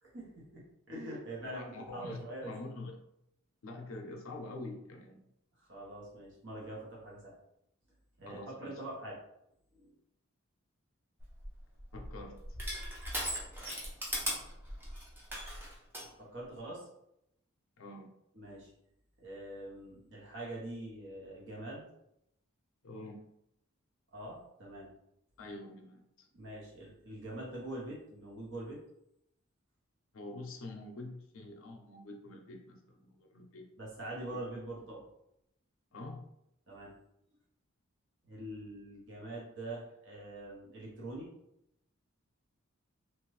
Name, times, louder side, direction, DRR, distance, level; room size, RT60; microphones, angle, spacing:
voice 1, 0.0-2.5 5.7-7.3 8.2-9.2 9.7-9.9 16.2-16.9 18.3-18.7 19.2-21.9 24.1-24.9 26.3-28.8 33.8-35.0 36.7-37.0 38.2-41.3, right 1 dB, 55° right, -5 dB, 1.1 m, -44 dB
voice 2, 1.5-3.0 3.6-5.2 8.3-8.7 11.9-12.4 17.8-18.1 22.8-23.2 25.4-26.3 30.1-33.7 34.2-34.4 35.9-36.2, left 2 dB, 70° left, 2 dB, 0.5 m, -46 dB
Crushing, 11.2-16.1, equal, 10° right, 0.6 m, -39 dB
3.0 x 2.5 x 3.1 m, 0.80 s
head